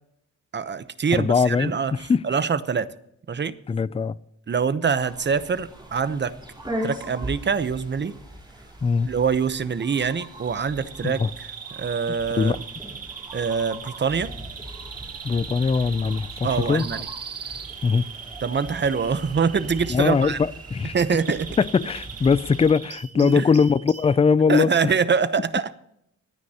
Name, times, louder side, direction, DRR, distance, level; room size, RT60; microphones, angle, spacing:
voice 1, 0.5-2.9 3.3-3.6 4.5-6.4 6.8-8.1 9.1-11.2 11.7-12.6 13.3-14.3 16.4-17.1 18.4-20.4 20.9-21.5 23.2-23.5 24.5-25.7, right 6 dB, 35° right, 0.8 m, -24 dB
voice 2, 1.2-2.2 3.7-4.1 8.8-9.1 11.0-11.3 12.4-12.6 15.2-16.9 17.8-18.1 19.9-20.9 21.6-25.0, left 5 dB, 20° left, 0.4 m, -21 dB
sound 1, 5.0-22.7, equal, 15° right, 4.2 m, -40 dB
Bird vocalization bird call bird song, 10.2-24.2, right 7 dB, 50° right, 1.2 m, -40 dB
25.5 x 9.6 x 2.9 m
wide cardioid pair, 120°, 31 cm